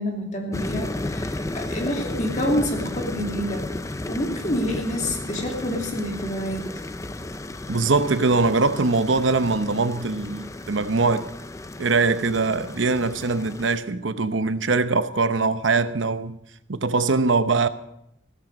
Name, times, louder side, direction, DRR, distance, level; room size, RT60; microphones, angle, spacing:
voice 1, 0.0-3.7 4.1-6.6, equal, 40° left, 2.7 m, -28 dB
sound 1, 0.5-13.8, left 1 dB, 15° left, 0.5 m, -33 dB
voice 2, 7.7-11.3 11.8-16.4 16.7-17.7, right 3 dB, 85° right, 0.9 m, -22 dB
15.5 x 13.5 x 5.1 m
head